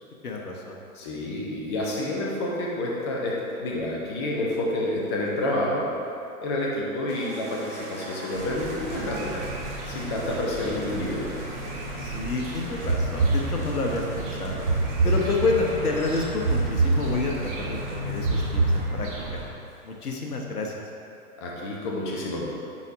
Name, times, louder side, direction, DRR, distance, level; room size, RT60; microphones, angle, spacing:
voice 1, 0.2-0.8 12.0-14.6 15.0-19.4 19.8-20.8, left 3 dB, 75° left, 0 dB, 1.0 m, -29 dB
voice 2, 0.9-5.9 6.4-9.4 9.9-11.4 21.4-22.5, left 1 dB, 20° left, -3 dB, 0.5 m, -29 dB
sound 1, 7.1-19.8, right 1 dB, 85° right, 1.3 m, -43 dB
sound 2, 8.4-19.4, right 2 dB, 35° right, 1.0 m, -34 dB
sound 3, 12.8-14.0 14.6-15.8 16.4-17.6 18.2-19.4, right 3 dB, 65° right, 0.9 m, -25 dB
9.3 x 4.1 x 2.5 m, 2.8 s
figure-of-eight pair, 110°, 45 cm